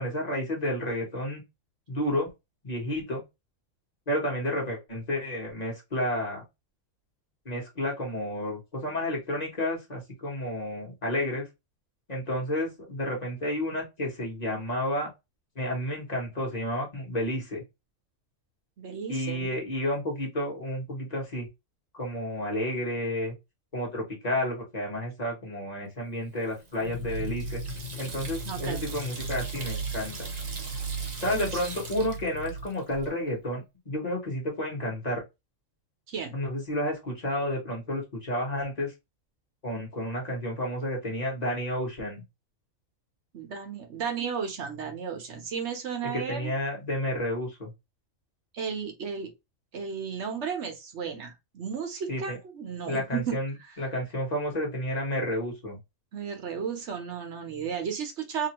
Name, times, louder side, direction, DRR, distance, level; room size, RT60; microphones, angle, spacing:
voice 1, 0.0-1.4 1.9-2.3 2.6-3.2 4.1-6.4 7.4-11.5 12.1-15.1 15.5-17.6 19.1-21.5 21.9-23.3 23.7-27.6 28.0-30.1 31.2-35.2 36.3-38.9 39.6-42.2 46.0-47.7 52.1-52.4 52.9-55.8, left 1 dB, 30° left, 1.2 m, -31 dB
voice 2, 18.8-19.5 28.4-28.8 31.3-31.5 36.1-36.4 43.3-46.5 48.5-49.3 49.7-53.4 56.1-58.5, right 6 dB, 60° right, 1.0 m, -34 dB
Water tap faucet / Sink (filling or washing), 26.4-33.1, right 3 dB, 45° right, 0.6 m, -42 dB
sound 1, 26.8-32.7, right 3 dB, 65° left, 0.9 m, -36 dB
2.9 x 2.6 x 2.9 m
omnidirectional pair, 1.4 m